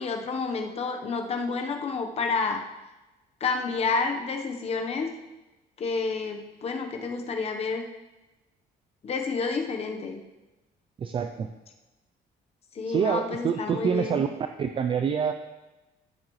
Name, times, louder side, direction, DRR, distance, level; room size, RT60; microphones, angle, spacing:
voice 1, 0.0-2.6 3.4-5.1 5.8-7.8 9.0-10.2 12.7-14.2, left 4 dB, 35° left, 4 dB, 1.0 m, -29 dB
voice 2, 11.0-11.5 12.9-14.3 14.6-15.3, right 7 dB, 30° right, 7 dB, 0.4 m, -26 dB
13.5 x 7.3 x 3.2 m, 1.1 s
cardioid pair, 145°, 17 cm